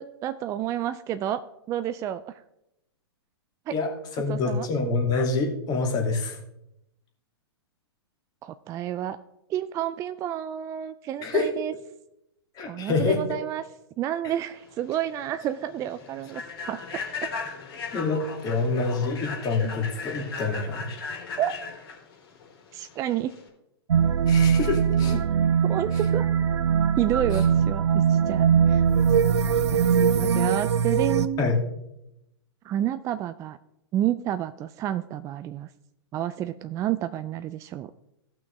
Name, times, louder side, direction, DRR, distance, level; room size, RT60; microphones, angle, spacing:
voice 1, 0.0-2.3 3.7-3.8 4.3-4.7 8.4-9.2 9.5-11.7 12.7-13.7 14.0-16.4 16.7-16.8 17.2-17.3 19.6-19.8 21.4-21.5 22.7-23.3 25.6-26.3 27.0-28.9 29.2-29.4 29.7-31.5 32.6-33.6 33.9-35.7 36.1-37.9, right 11 dB, 20° right, 11 dB, 0.3 m, -30 dB
voice 2, 4.2-6.4 11.2-11.5 12.6-13.2 17.9-20.9 24.3-25.2 31.4-31.6, left 4 dB, 30° left, 1 dB, 2.2 m, -26 dB
Human voice / Train, 14.6-23.5, left 4 dB, 65° left, 3.4 m, -37 dB
sound 1, 23.9-31.3, right 7 dB, 80° right, 0.6 m, -21 dB
16.5 x 6.0 x 3.2 m, 0.84 s
hypercardioid pair, 115°, 14 cm